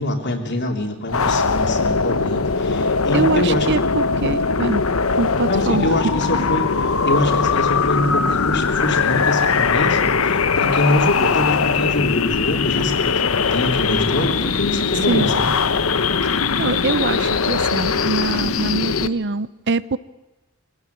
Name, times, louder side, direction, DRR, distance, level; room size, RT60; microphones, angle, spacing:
voice 1, 0.0-3.7 5.5-6.7 7.1-15.5, left 1 dB, 55° left, 3 dB, 3.4 m, -24 dB
sound 1, 1.1-19.1, left 5 dB, 90° left, 1.0 m, -20 dB
voice 2, 3.1-4.8 5.2-5.9 15.1-15.3 16.2-20.0, right 3 dB, 55° right, 17 dB, 0.7 m, -23 dB
24.0 x 17.0 x 9.6 m, 1.1 s
head